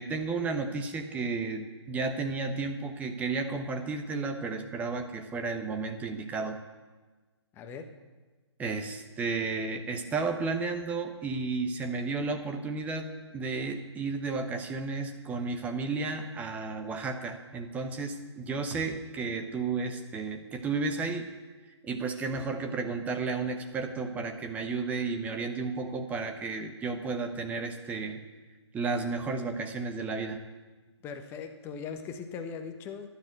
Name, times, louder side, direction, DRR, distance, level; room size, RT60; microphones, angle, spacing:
voice 1, 0.0-6.6 8.6-13.1 13.3-21.3 21.8-28.2 28.7-30.4, right 4 dB, 10° right, 5 dB, 1.1 m, -33 dB
voice 2, 7.5-7.9 31.0-33.1, left 6 dB, 15° left, 6 dB, 1.2 m, -39 dB
12.0 x 11.5 x 7.9 m, 1.3 s
figure-of-eight pair, 135°, 15 cm